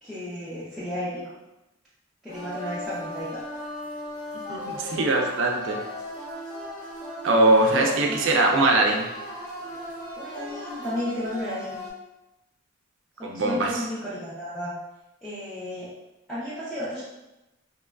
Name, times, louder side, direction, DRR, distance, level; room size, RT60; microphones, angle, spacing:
voice 1, 0.0-1.2 2.2-3.4 7.6-8.2 10.2-11.8 13.2-14.7 15.2-15.9 16.3-17.0, left 1 dB, ahead, -11 dB, 0.4 m, -33 dB
sound 1, 2.3-11.9, left 1 dB, 35° left, 1.0 m, -37 dB
voice 2, 4.5-5.8 7.2-9.1 13.2-13.7, right 2 dB, 65° right, 1 dB, 0.4 m, -21 dB
2.9 x 2.2 x 2.2 m, 0.97 s
head